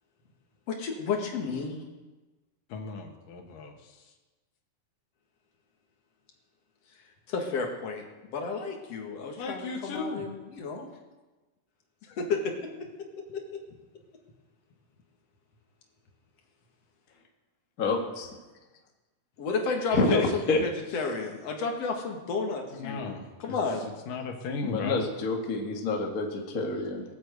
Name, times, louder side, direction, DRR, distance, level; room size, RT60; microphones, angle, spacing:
voice 1, 0.7-1.8 7.3-10.9 12.0-12.5 19.4-23.9, left 4 dB, 55° left, 1 dB, 2.9 m, -32 dB
voice 2, 2.7-4.0 9.4-10.2 22.7-23.6 24.1-25.0, left 4 dB, 90° left, 3 dB, 3.3 m, -36 dB
voice 3, 17.8-18.3 19.9-20.6 24.6-27.0, left 3 dB, 35° left, 1 dB, 1.7 m, -27 dB
19.0 x 8.6 x 8.1 m, 1.2 s
omnidirectional pair, 3.7 m